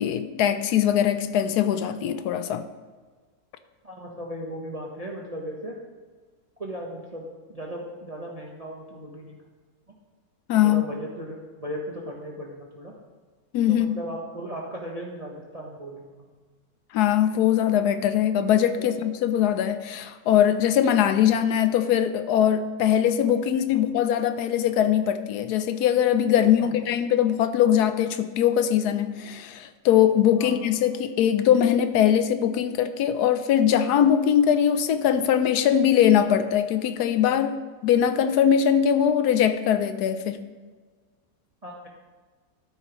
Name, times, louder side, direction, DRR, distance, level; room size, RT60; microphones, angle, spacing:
voice 1, 0.0-2.7 10.5-10.8 13.5-14.0 16.9-37.6 37.8-40.4, left 9 dB, 90° left, 10 dB, 1.2 m, -21 dB
voice 2, 3.8-5.8 6.6-7.3 7.5-9.4 10.6-12.9 13.7-16.3 18.8-18.9 26.6-26.7 30.4-30.5 41.6-41.9, equal, 30° right, -2 dB, 0.9 m, -36 dB
12.5 x 9.8 x 3.0 m, 1.4 s
omnidirectional pair, 1.7 m